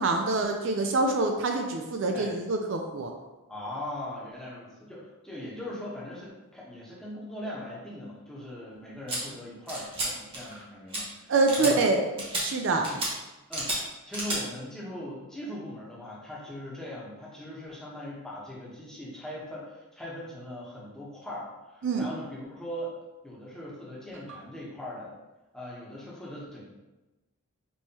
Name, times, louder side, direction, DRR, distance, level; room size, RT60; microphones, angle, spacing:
voice 1, 0.0-3.1 11.3-12.0 12.4-12.9 21.8-22.1, right 3 dB, 55° right, 3 dB, 0.4 m, -25 dB
voice 2, 3.5-11.9 12.7-13.0 13.5-13.7 14.0-22.9 23.2-25.1 25.5-26.7, left 1 dB, 5° left, -6 dB, 0.9 m, -40 dB
sound 1, 9.1-9.2 9.7-10.1 10.3-10.6 10.9-11.0 11.5-11.7 12.2-12.4 12.8-13.1 13.5-13.8 14.1-14.4, right 1 dB, 25° right, 1.1 m, -31 dB
5.4 x 3.1 x 2.9 m, 1.1 s
head